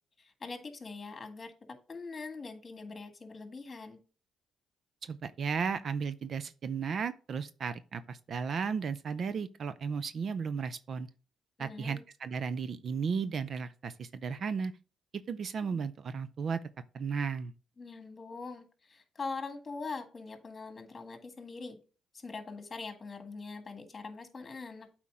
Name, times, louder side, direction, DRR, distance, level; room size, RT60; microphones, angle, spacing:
voice 1, 0.2-4.0 11.6-12.0 17.8-21.8 22.1-24.9, left 4 dB, 30° left, 1.7 m, -43 dB
voice 2, 5.0-11.1 11.6-14.7 15.3-16.6 16.9-17.5, right 6 dB, 55° right, 0.5 m, -34 dB
8.3 x 4.5 x 3.7 m
cardioid pair, 90°, 0 cm